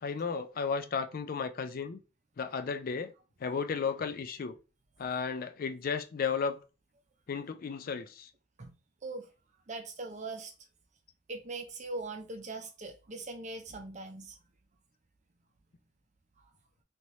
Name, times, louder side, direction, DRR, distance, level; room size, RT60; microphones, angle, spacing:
voice 1, 0.0-2.0 2.4-3.1 3.4-4.6 5.0-6.6 7.3-8.3, left 5 dB, 45° left, 0.4 m, -34 dB
voice 2, 9.7-10.5 11.3-14.4, right 3 dB, 40° right, 0.6 m, -41 dB
3.2 x 2.9 x 2.7 m
head